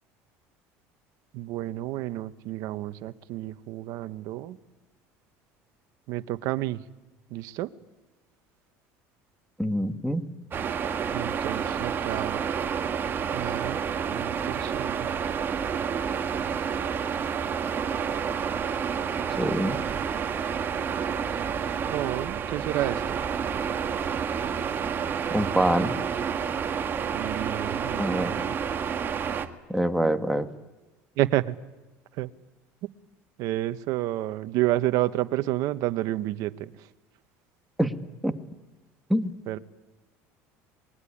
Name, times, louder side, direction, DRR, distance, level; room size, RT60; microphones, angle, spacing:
voice 1, 1.3-4.6 6.1-6.8 7.3-7.7 11.1-12.4 13.3-15.1 21.9-23.2 27.1-28.6 31.2-31.6 32.2-32.3 33.4-36.9 39.5-39.6, right 15 dB, 70° right, 12 dB, 1.1 m, -30 dB
voice 2, 9.6-10.3 19.4-19.8 25.3-26.0 27.9-28.3 29.7-30.5 37.8-37.9 38.2-38.3 39.1-39.3, right 1 dB, ahead, 7 dB, 1.7 m, -25 dB
sound 1, 10.5-29.5, right 7 dB, 35° right, 1.7 m, -29 dB
26.0 x 21.5 x 10.0 m, 1.2 s
supercardioid pair, 105°, 6 cm